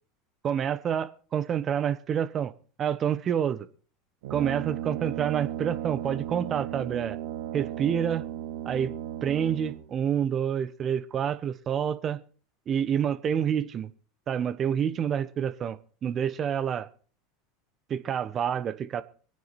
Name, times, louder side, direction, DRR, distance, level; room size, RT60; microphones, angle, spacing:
voice 1, 0.4-2.5 2.8-3.7 4.3-7.2 7.5-8.3 8.6-8.9 9.2-12.2 12.7-13.9 14.3-16.9 17.9-19.0, right 8 dB, 35° right, 1.2 m, -28 dB
Brass instrument, 4.2-10.0, right 12 dB, 70° right, 1.2 m, -35 dB
23.5 x 9.4 x 4.3 m
hypercardioid pair, 80°, 0 cm